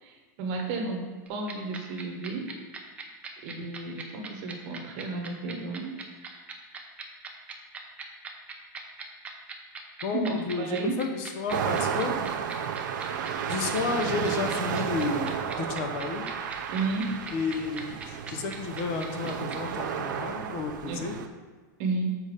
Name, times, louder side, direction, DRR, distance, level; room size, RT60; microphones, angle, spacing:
voice 1, 0.0-2.5 3.4-6.5 10.1-11.0 16.7-17.2 20.9-21.0 21.8-22.2, right 3 dB, 45° right, 2 dB, 1.0 m, -32 dB
sound 1, 1.3-19.6, right 6 dB, 10° right, 0.6 m, -39 dB
voice 2, 10.0-12.1 13.4-16.3 17.3-21.2, left 4 dB, 45° left, 5 dB, 0.8 m, -32 dB
sound 2, 11.5-21.3, right 8 dB, 75° right, 0.6 m, -32 dB
7.0 x 4.2 x 5.2 m, 1.4 s
supercardioid pair, 160°, 10 cm